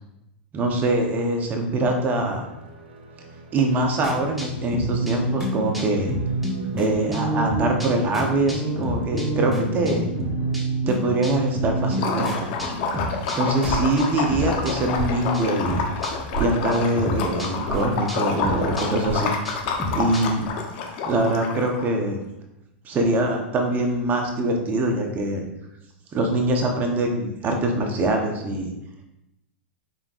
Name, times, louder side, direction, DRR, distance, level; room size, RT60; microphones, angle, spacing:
voice 1, 0.5-2.5 3.5-6.1 6.8-10.1 10.9-12.5 13.3-15.8 16.4-19.3 19.9-20.5 21.1-22.2 22.8-25.4 26.1-28.7, right 2 dB, 30° right, 3 dB, 0.8 m, -23 dB
sound 1, 2.0-10.6, right 2 dB, 80° right, 0.8 m, -41 dB
sound 2, 4.0-15.1 15.3-16.4 16.7-20.5, right 1 dB, ahead, 1.0 m, -29 dB
Liquid, 11.9-21.8, left 5 dB, 60° left, 0.8 m, -28 dB
5.1 x 3.5 x 2.4 m, 0.89 s
hypercardioid pair, 115°, 6 cm